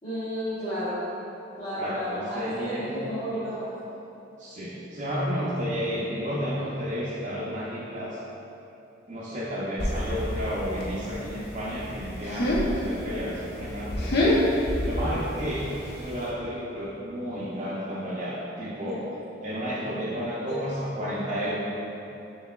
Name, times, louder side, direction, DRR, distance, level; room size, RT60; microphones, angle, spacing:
voice 1, 0.0-1.1 1.6-3.7 18.9-19.0 20.5-20.6, equal, 40° left, -16 dB, 1.1 m, -32 dB
voice 2, 1.8-2.9 4.4-8.2 9.1-19.1 19.4-21.6, equal, 40° right, -9 dB, 0.5 m, -32 dB
sound 1, 9.8-16.3, left 1 dB, 60° left, 0.6 m, -28 dB
5.7 x 3.1 x 2.3 m, 2.9 s
head